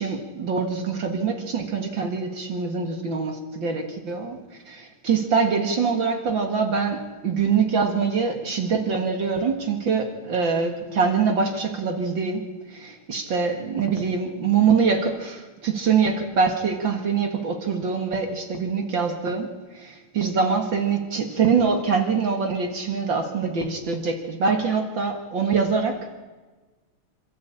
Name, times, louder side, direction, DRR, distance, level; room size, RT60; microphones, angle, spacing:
voice 1, 0.0-4.4 4.7-12.4 12.7-26.2, right 5 dB, 60° right, 5 dB, 2.5 m, -24 dB
27.5 x 13.0 x 8.7 m, 1.3 s
omnidirectional pair, 2.3 m